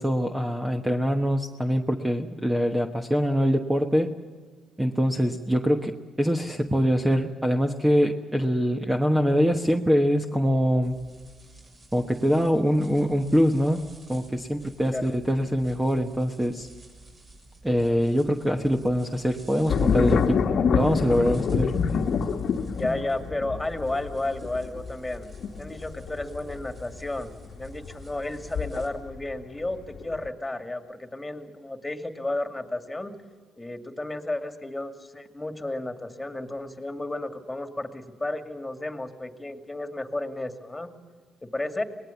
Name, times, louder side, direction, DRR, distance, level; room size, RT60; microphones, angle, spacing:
voice 1, 0.0-4.2 4.8-11.0 11.9-16.7 17.6-20.4 20.7-21.7, equal, 10° right, 4 dB, 1.2 m, -24 dB
sound 1, 10.8-28.9, right 2 dB, 45° right, 6.9 m, -50 dB
voice 2, 14.8-15.2 22.7-25.3 25.6-27.3 27.6-33.1 33.6-40.9 41.4-41.8, left 2 dB, 15° left, 7 dB, 2.3 m, -32 dB
sound 2, 19.7-29.3 29.7-30.3, left 6 dB, 65° left, 1.3 m, -27 dB
24.0 x 19.5 x 7.1 m, 1.5 s
cardioid pair, 90°, 0 cm